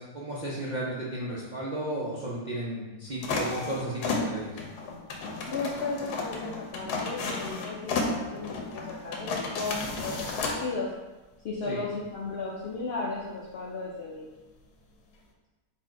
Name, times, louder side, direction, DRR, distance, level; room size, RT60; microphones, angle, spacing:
voice 1, 0.0-4.5 11.7-11.8, right 1 dB, 55° right, -6 dB, 0.5 m, -34 dB
sound 1, 3.2-10.6, left 3 dB, 85° left, 1.2 m, -33 dB
voice 2, 5.5-10.9 11.4-14.3, left 3 dB, 65° left, -4 dB, 0.6 m, -35 dB
4.3 x 2.7 x 4.5 m, 1.2 s
omnidirectional pair, 1.6 m